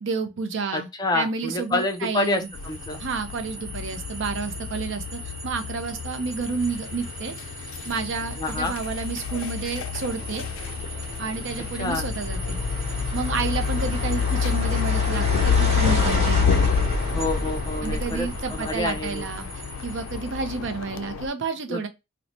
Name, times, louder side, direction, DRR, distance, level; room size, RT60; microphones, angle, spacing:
voice 1, 0.0-0.9 1.1-2.5 3.0-7.4 7.8-10.5 11.2-12.6 13.1-16.4 17.8-19.5 19.8-21.9, right 4 dB, 65° right, 0.5 m, -30 dB
voice 2, 0.7-3.0 8.4-8.8 11.8-12.1 17.1-19.3 21.7-21.8, left 2 dB, 20° left, 0.4 m, -28 dB
sound 1, 1.9-20.4, equal, 30° right, 1.0 m, -33 dB
sound 2, 2.5-21.3, left 7 dB, 85° left, 0.4 m, -28 dB
3.0 x 2.1 x 3.9 m
head